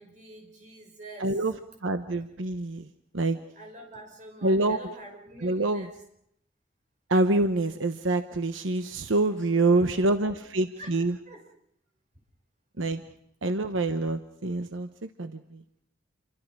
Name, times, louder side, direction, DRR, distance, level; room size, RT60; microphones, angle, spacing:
voice 1, 0.0-1.4 3.5-5.9 9.3-10.4 10.8-10.9 11.3-11.5, right 1 dB, 40° right, 1 dB, 6.1 m, -46 dB
voice 2, 1.2-1.5 1.8-2.9 3.1-3.4 4.4-4.8 5.4-5.9 7.1-11.1 12.8-13.0 13.4-15.8, right 2 dB, 85° right, 8 dB, 1.1 m, -26 dB
28.5 x 24.0 x 4.9 m, 0.73 s
head